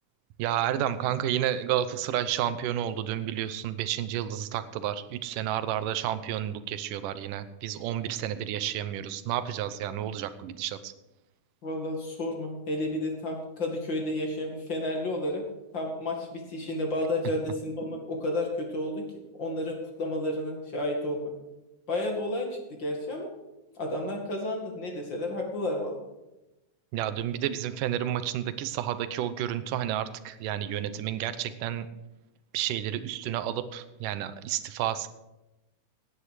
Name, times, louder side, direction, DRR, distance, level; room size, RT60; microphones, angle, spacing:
voice 1, 0.4-10.9 26.9-31.9 32.5-35.1, right 11 dB, 90° right, 12 dB, 2.4 m, -31 dB
voice 2, 11.6-15.4 15.7-19.0 19.4-21.3 21.9-23.3 23.8-26.0, left 1 dB, 40° left, 1 dB, 2.6 m, -31 dB
17.0 x 9.8 x 4.9 m, 0.98 s
omnidirectional pair, 3.7 m